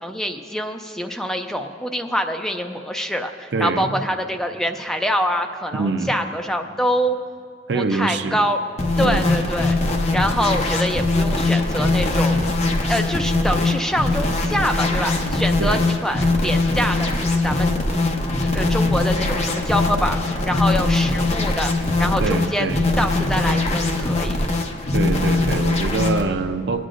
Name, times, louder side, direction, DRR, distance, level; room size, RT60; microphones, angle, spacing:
voice 1, 0.0-7.2 7.7-8.6 9.0-9.8 10.1-12.4 12.9-17.7 18.5-21.7 22.0-24.4, equal, 5° left, 4 dB, 0.4 m, -25 dB
voice 2, 3.5-4.0 5.7-6.1 7.7-8.4 9.0-9.3 15.6-15.8 22.2-22.8 24.9-26.9, right 3 dB, 75° right, 8 dB, 0.5 m, -24 dB
sound 1, 8.8-26.2, left 2 dB, 40° left, 0.8 m, -21 dB
25.0 x 9.2 x 2.5 m, 2.2 s
head